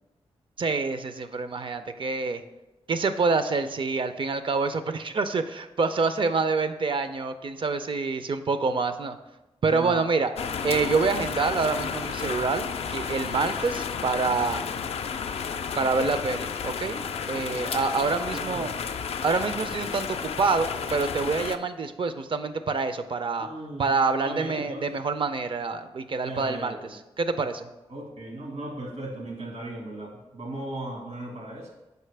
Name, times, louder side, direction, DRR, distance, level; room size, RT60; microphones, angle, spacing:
voice 1, 0.6-2.4 2.9-9.2 9.6-10.3 10.6-14.7 15.8-18.7 19.2-23.5 23.8-27.7, right 4 dB, 50° right, 10 dB, 0.5 m, -27 dB
sound 1, 10.4-21.6, left 6 dB, 65° left, 0.4 m, -32 dB
voice 2, 18.0-18.9 23.4-23.9 24.2-25.0 26.2-27.0 27.9-31.7, right 1 dB, 80° right, -2 dB, 1.9 m, -37 dB
6.6 x 4.6 x 3.3 m, 1.0 s
cardioid pair, 60°, 11 cm